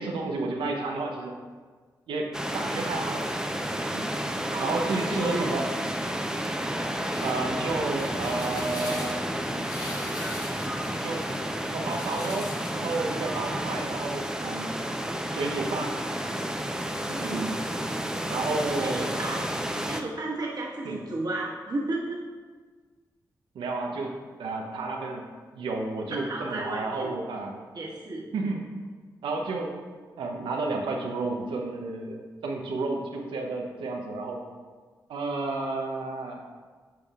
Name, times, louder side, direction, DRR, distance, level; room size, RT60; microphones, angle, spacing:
voice 1, 0.0-1.3 2.1-3.3 3.9-4.1 4.6-5.7 7.2-9.2 11.0-11.3 11.7-14.7 15.3-16.0 17.1-17.6 18.3-19.0 20.8-21.0 23.5-24.1 24.4-25.2 25.5-27.6 28.3-28.6 29.2-29.8 30.2-34.4 35.1-36.4, right 3 dB, 85° right, 2 dB, 0.8 m, -31 dB
sound 1, 2.3-20.0, right 1 dB, 5° right, 0.7 m, -31 dB
voice 2, 4.5-5.5 17.2-17.5 18.8-19.5 19.8-22.2 26.1-27.1 27.7-28.3, right 2 dB, 55° right, -4 dB, 1.5 m, -33 dB
sound 2, 6.9-12.8, left 1 dB, 55° left, 1.5 m, -42 dB
8.8 x 5.4 x 2.4 m, 1.5 s
supercardioid pair, 40°, 8 cm